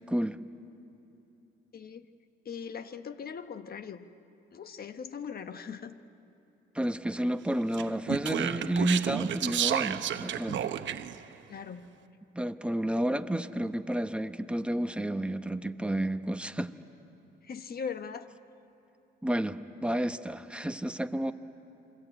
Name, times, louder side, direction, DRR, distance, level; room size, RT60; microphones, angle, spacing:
voice 1, 0.1-0.4 6.7-10.7 12.3-16.7 19.2-21.3, right 1 dB, 5° right, 9 dB, 1.0 m, -31 dB
voice 2, 1.7-2.1 2.4-4.1 4.5-6.0 11.5-11.9 17.4-18.3, left 6 dB, 50° left, 9 dB, 1.3 m, -40 dB
Speech, 7.7-11.2, right 10 dB, 70° right, 1.0 m, -31 dB
28.0 x 22.5 x 9.0 m, 3.0 s
cardioid pair, 90°, 20 cm